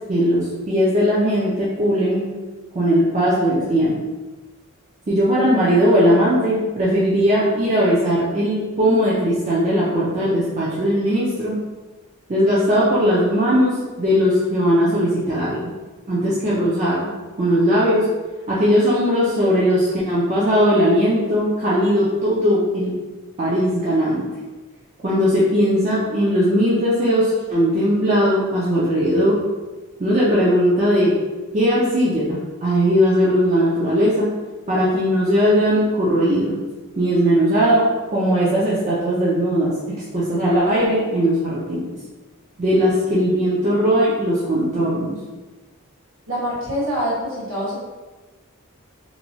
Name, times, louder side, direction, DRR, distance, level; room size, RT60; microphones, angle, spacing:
voice 1, 0.1-2.3 2.7-4.0 5.1-11.6 12.3-15.6 16.1-17.1 17.4-18.1 18.5-22.9 23.4-24.3 25.0-29.4 30.0-31.1 31.5-34.3 34.7-36.6 37.0-37.8 38.1-39.7 40.1-42.0 42.6-45.1, equal, 30° right, -8 dB, 0.4 m, -18 dB
voice 2, 46.3-47.7, equal, 65° right, -7 dB, 1.2 m, -25 dB
3.0 x 2.2 x 2.6 m, 1.2 s
head